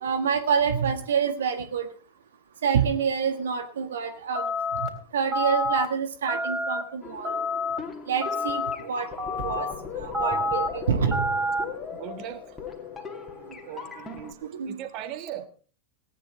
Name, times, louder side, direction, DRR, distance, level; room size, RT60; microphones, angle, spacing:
voice 1, 0.0-1.8 2.6-4.4 5.1-7.4 8.1-9.1 9.4-9.7 10.0-11.2 14.6-14.8, right 6 dB, 65° right, 7 dB, 1.5 m, -27 dB
sound 1, 4.4-4.9 5.3-5.9 6.3-6.8 7.2-7.8 8.2-8.8 9.2-9.7 10.1-10.7 11.1-11.7, left 1 dB, 15° right, 3.7 m, -27 dB
sound 2, 7.0-14.3, left 6 dB, 10° left, 2.7 m, -39 dB
voice 2, 11.9-12.6 13.6-15.5, right 10 dB, 40° right, 9 dB, 1.7 m, -39 dB
18.0 x 10.0 x 4.6 m, 0.39 s
figure-of-eight pair, 90°, 0 cm